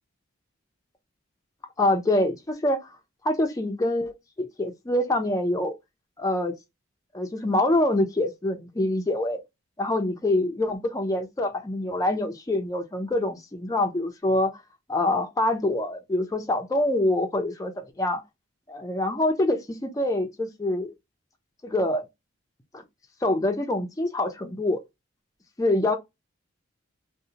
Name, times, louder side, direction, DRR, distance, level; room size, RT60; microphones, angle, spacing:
voice 1, 1.8-2.8 3.2-4.1 4.4-5.7 6.2-6.5 7.1-9.4 9.8-14.5 14.9-17.7 18.0-18.2 18.7-20.9 21.6-22.0 22.7-22.8 23.2-24.8 25.6-26.0, left 1 dB, 15° left, 0.4 m, -25 dB
2.7 x 2.0 x 2.7 m
head